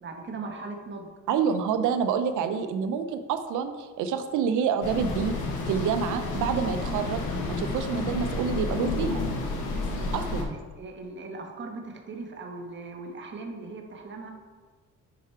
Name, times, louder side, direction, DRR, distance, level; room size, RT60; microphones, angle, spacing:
voice 1, 0.0-1.1 10.0-10.3 10.8-14.3, right 3 dB, 40° right, 3 dB, 1.2 m, -39 dB
voice 2, 1.3-5.3 5.7-7.2 7.5-9.2 10.1-10.6, right 7 dB, 85° right, 9 dB, 0.7 m, -27 dB
sound 1, 4.8-10.4, left 2 dB, 85° left, 1.3 m, -30 dB
7.0 x 4.8 x 4.5 m, 1.4 s
cardioid pair, 90°, 30 cm